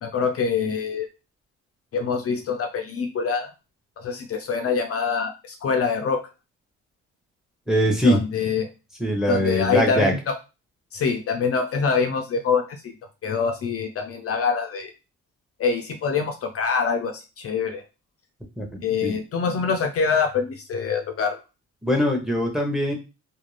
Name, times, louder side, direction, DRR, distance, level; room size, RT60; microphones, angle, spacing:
voice 1, 0.0-1.1 1.9-3.5 4.0-6.2 8.0-8.7 9.3-10.3 10.9-12.9 13.2-14.9 15.6-17.8 18.8-21.4, left 5 dB, 50° left, 5 dB, 0.5 m, -25 dB
voice 2, 7.7-8.2 9.0-10.1 18.6-19.2 21.8-22.9, equal, ahead, 1 dB, 0.8 m, -22 dB
2.5 x 2.1 x 3.1 m, 0.29 s
cardioid pair, 90°, 30 cm